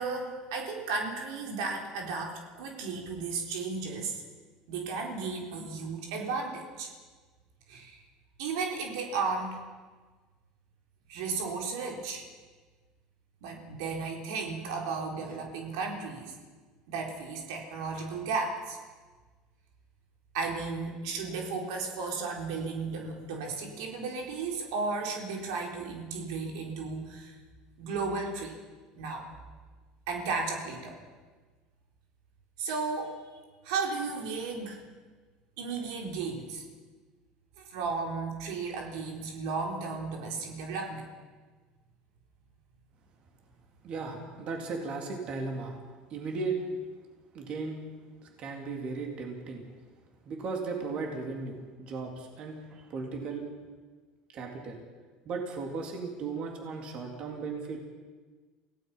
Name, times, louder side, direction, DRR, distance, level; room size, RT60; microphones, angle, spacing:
voice 1, 0.0-4.2 4.7-6.9 7.7-8.0 8.4-9.6 11.1-12.2 13.4-16.3 16.9-18.8 20.3-27.4 27.8-28.6 28.9-29.2 30.1-31.0 32.6-34.8 35.6-36.7 37.6-41.1, right 4 dB, 85° right, 1 dB, 4.1 m, -34 dB
voice 2, 43.8-45.8 46.1-46.6 47.3-47.8 48.2-49.6 50.3-53.5 54.3-54.8 55.3-57.8, right 4 dB, 45° right, 1 dB, 3.6 m, -36 dB
28.0 x 17.5 x 5.8 m, 1.4 s
cardioid pair, 140°, 3 cm